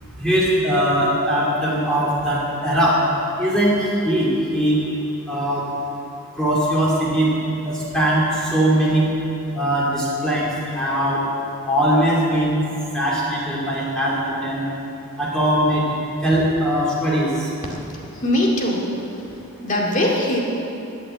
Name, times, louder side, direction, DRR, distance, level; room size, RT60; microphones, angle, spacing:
voice 1, 0.2-3.0 3.4-4.8 5.3-5.6 6.3-7.3 7.7-9.1 9.5-11.2 11.7-12.6 12.9-14.6 15.2-15.8 16.2-17.5, equal, 5° left, -7 dB, 2.5 m, -20 dB
voice 2, 18.1-18.9 19.6-20.4, left 1 dB, 35° left, -2 dB, 2.2 m, -20 dB
12.5 x 9.2 x 7.8 m, 2.8 s
head